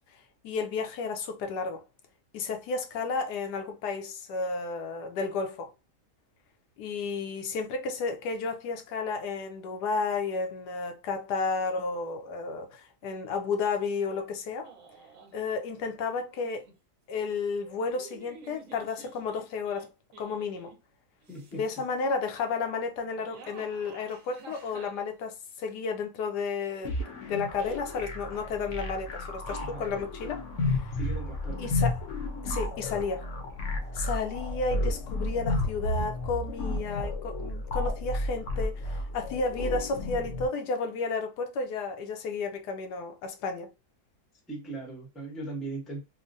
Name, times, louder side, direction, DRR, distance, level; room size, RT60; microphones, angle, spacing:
voice 1, 0.4-1.8 2.3-5.7 6.8-14.7 15.3-16.6 17.1-19.9 20.2-20.7 21.5-30.4 30.7-30.9 31.6-32.0 32.4-33.3 33.9-43.7, left 4 dB, 85° left, 1.2 m, -32 dB
sound 1, 14.6-15.4 16.1-16.7 17.6-20.8 21.2-21.8 23.0-25.7, right 4 dB, 60° right, 1.0 m, -51 dB
voice 2, 21.3-21.7 29.6-29.8 30.9-31.7 44.5-46.0, right 2 dB, ahead, 0.5 m, -38 dB
sound 2, 26.9-40.5, left 2 dB, 60° left, 0.9 m, -32 dB
3.5 x 2.1 x 2.6 m
omnidirectional pair, 1.7 m